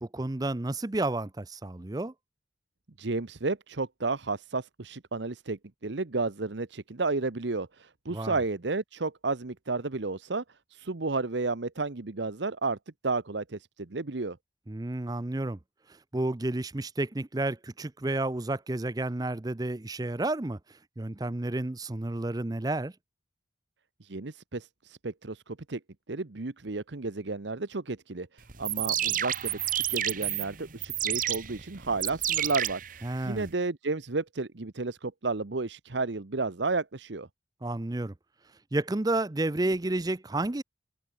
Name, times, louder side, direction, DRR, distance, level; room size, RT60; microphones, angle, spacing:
voice 1, 0.0-2.1 8.1-8.4 14.7-15.6 15.9-22.9 33.0-33.5 37.6-38.1 38.7-40.6, right 2 dB, 20° right, 0.5 m, -31 dB
voice 2, 3.0-10.4 10.7-12.8 13.0-14.4 24.0-25.8 26.1-37.3, right 3 dB, 70° right, 1.0 m, -32 dB
sound 1, 28.5-33.5, right 11 dB, 45° right, 1.9 m, -30 dB
open air
head